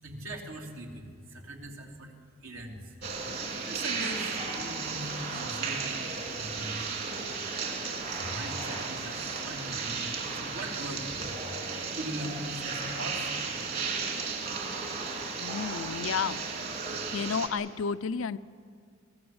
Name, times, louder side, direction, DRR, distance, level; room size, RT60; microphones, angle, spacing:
voice 1, 0.0-2.1 2.4-2.9 3.7-6.1 6.3-7.0 8.1-11.3 11.7-13.3, right 1 dB, 75° right, 1 dB, 3.3 m, -41 dB
sound 1, 3.0-17.5, right 4 dB, 45° right, 3.4 m, -34 dB
voice 2, 15.4-16.4 17.1-18.4, left 6 dB, 70° left, 14 dB, 0.5 m, -31 dB
27.0 x 19.0 x 7.9 m, 2.2 s
head